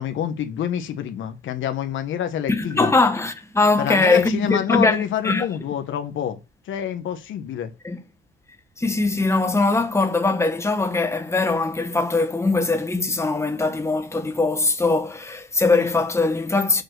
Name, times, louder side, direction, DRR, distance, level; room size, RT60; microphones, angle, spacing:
voice 1, 0.0-2.9 3.8-6.4 6.7-7.7, left 9 dB, 75° left, 1.2 m, -27 dB
voice 2, 2.5-5.4 7.8-8.0 8.8-16.8, left 3 dB, 15° left, 1.2 m, -21 dB
6.5 x 4.4 x 6.7 m
cardioid pair, 90°, 20 cm